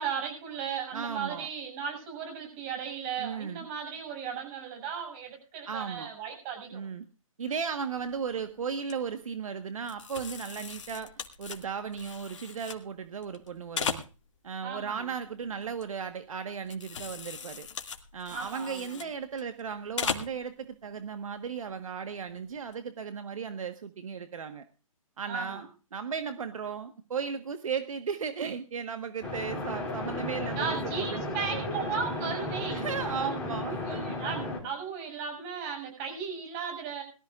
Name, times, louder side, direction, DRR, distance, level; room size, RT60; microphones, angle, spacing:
voice 1, 0.0-6.8 14.6-15.1 18.3-18.9 25.3-25.7 30.5-32.9 33.2-37.0, right 6 dB, 25° right, 3 dB, 7.2 m, -36 dB
voice 2, 0.9-1.5 3.2-3.7 5.7-6.1 6.7-7.1 7.4-11.1 11.4-14.0 14.4-17.7 18.1-24.6 25.2-31.2 31.5-31.6 32.7-34.1, right 6 dB, 65° right, 9 dB, 1.4 m, -36 dB
sound 1, 7.9-8.2 8.6-8.9 9.9-12.8 13.2-14.5 14.9-16.3 16.6-19.6 19.9-20.4 20.8-20.9 22.5-22.7, left 6 dB, 55° left, 2.3 m, -38 dB
sound 2, 29.2-34.6, left 2 dB, 5° left, 4.3 m, -34 dB
21.5 x 13.5 x 2.5 m, 0.35 s
hypercardioid pair, 150°, 18 cm